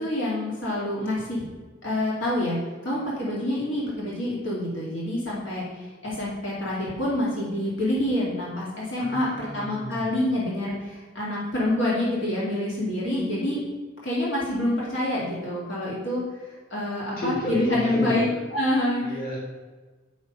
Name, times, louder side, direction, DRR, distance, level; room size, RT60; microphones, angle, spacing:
voice 1, 0.0-1.4 1.8-13.6 14.0-16.2 16.7-18.2 18.5-19.0, left 1 dB, 80° left, -6 dB, 2.4 m, -27 dB
voice 2, 9.0-10.1 17.2-18.3 19.0-19.4, left 1 dB, 50° left, -4 dB, 3.2 m, -32 dB
7.9 x 6.4 x 5.4 m, 1.3 s
head